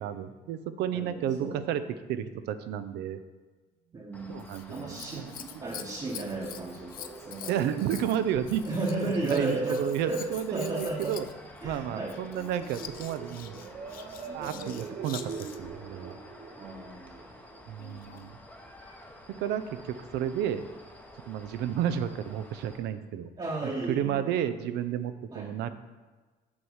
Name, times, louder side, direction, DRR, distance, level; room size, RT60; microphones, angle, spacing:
voice 1, 0.0-3.2 4.3-5.6 7.4-11.3 11.6-13.6 14.3-16.1 17.7-18.4 19.4-20.6 21.2-23.3 23.9-25.7, right 9 dB, 80° right, 11 dB, 0.5 m, -32 dB
voice 2, 0.9-1.6 3.9-4.4 4.7-5.3 5.6-7.6 8.6-10.2 10.5-11.2 11.6-12.1 14.4-14.8 16.6-17.2 23.4-24.3 25.3-25.5, right 2 dB, 30° right, -3 dB, 1.1 m, -34 dB
sound 1, 4.1-22.8, left 1 dB, 10° left, 0.8 m, -51 dB
Scissors, 4.4-15.8 17.7-18.3 19.0-19.1, left 10 dB, 55° left, 0.5 m, -46 dB
sound 2, 4.8-18.4, right 5 dB, 50° right, 0.8 m, -46 dB
6.2 x 4.6 x 5.6 m, 1.3 s
cardioid pair, 110°, 17 cm